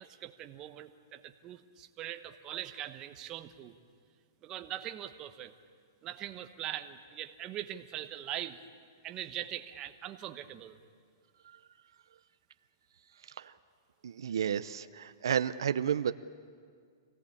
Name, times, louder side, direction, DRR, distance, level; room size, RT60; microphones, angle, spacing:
voice 1, 0.0-3.8 4.4-5.5 6.0-8.6 9.0-10.8, right 12 dB, 25° right, 8 dB, 1.1 m, -41 dB
voice 2, 13.2-13.5 14.0-16.1, right 8 dB, 80° right, 11 dB, 0.6 m, -32 dB
26.0 x 17.5 x 8.5 m, 2.1 s
hypercardioid pair, 145°, 2 cm